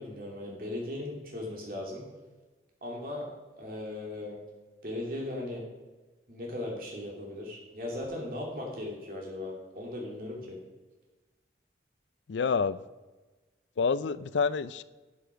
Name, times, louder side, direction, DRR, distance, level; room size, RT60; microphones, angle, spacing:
voice 1, 0.0-2.1 2.8-3.3 3.6-4.4 4.8-5.6 6.3-10.6, left 1 dB, 50° right, -1 dB, 2.9 m, -37 dB
voice 2, 12.3-12.8 13.8-14.8, left 5 dB, 85° left, 16 dB, 0.4 m, -28 dB
12.5 x 7.0 x 5.2 m, 1.2 s
head